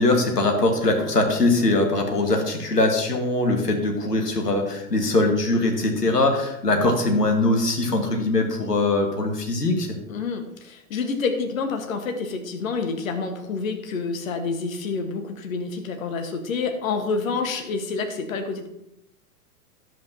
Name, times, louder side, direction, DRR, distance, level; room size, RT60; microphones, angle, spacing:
voice 1, 0.0-9.9, left 2 dB, 80° left, 3 dB, 1.6 m, -21 dB
voice 2, 10.1-18.7, left 4 dB, 60° left, 5 dB, 1.4 m, -28 dB
11.0 x 7.6 x 2.7 m, 0.82 s
figure-of-eight pair, 95°, 47 cm